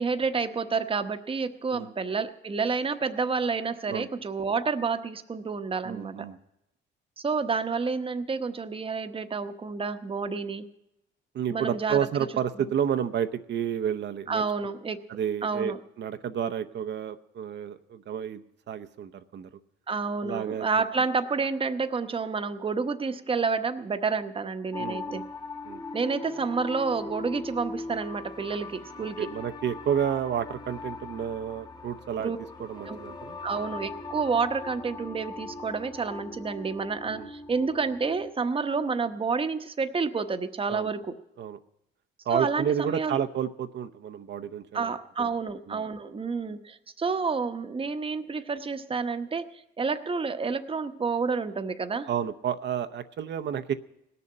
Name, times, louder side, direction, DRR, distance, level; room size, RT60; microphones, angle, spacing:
voice 1, 0.0-6.3 7.2-10.7 11.5-12.0 14.3-15.0 15.4-15.8 19.9-25.2 25.9-29.3 32.2-32.4 32.9-33.0 33.4-41.1 42.3-43.2 44.7-52.1, right 4 dB, 25° right, 9 dB, 1.0 m, -29 dB
voice 2, 5.8-6.4 11.3-14.4 15.1-19.5 20.2-20.7 24.8-25.3 25.6-25.8 29.2-32.3 32.6-33.4 37.1-37.3 40.7-40.9 41.4-41.6 42.3-44.9 45.2-45.3 45.7-45.8 52.1-53.7, right 8 dB, 60° right, 9 dB, 0.8 m, -30 dB
Beach relax in october, 24.7-38.3, left 3 dB, 20° left, 1.2 m, -40 dB
18.0 x 6.9 x 8.7 m, 0.85 s
cardioid pair, 90°, 20 cm